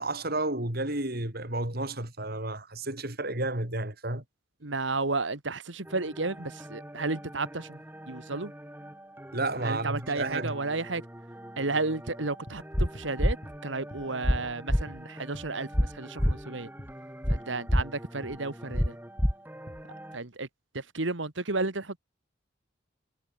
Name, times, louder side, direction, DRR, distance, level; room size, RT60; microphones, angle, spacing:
voice 1, 0.0-4.2 9.3-10.6, right 2 dB, 55° right, 4.2 m, -31 dB
voice 2, 4.6-7.8 8.1-8.5 9.6-11.0 11.6-13.4 13.6-16.7 17.3-19.0 20.1-20.5 20.7-22.0, right 3 dB, 75° right, 1.9 m, -32 dB
sound 1, 5.8-20.2, right 1 dB, 10° right, 4.4 m, -46 dB
sound 2, 12.5-12.6 12.9-13.1 13.4-13.6 13.9-14.1 14.4-14.5 14.9-15.0 15.3-15.5 15.8-16.0 16.3-16.5 16.8-16.9 17.3-17.4 17.7-17.9 18.2-18.4 18.7-18.9 19.2-19.3 19.7-19.8, equal, 40° left, 5.6 m, -46 dB
sound 3, 12.7-12.9 13.2-13.3 14.2-14.4 14.7-14.8 15.7-15.9 16.2-16.3 17.2-17.4 17.7-17.8 18.7-18.9 19.2-19.3, equal, 5° left, 1.3 m, -23 dB
head